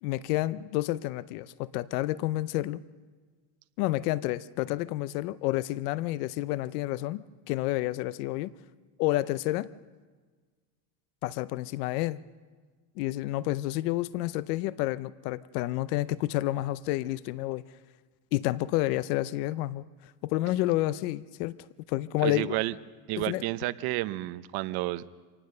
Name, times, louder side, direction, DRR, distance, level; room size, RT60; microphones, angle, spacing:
voice 1, 0.0-2.8 3.8-8.5 9.0-9.7 11.2-12.2 13.0-17.6 18.3-19.8 20.2-21.6 21.9-22.5 23.2-23.4, left 16 dB, 75° left, 17 dB, 0.7 m, -29 dB
voice 2, 22.2-22.7 23.1-25.1, right 17 dB, 55° right, 14 dB, 0.9 m, -31 dB
26.5 x 19.0 x 6.6 m, 1.4 s
supercardioid pair, 135°, 47 cm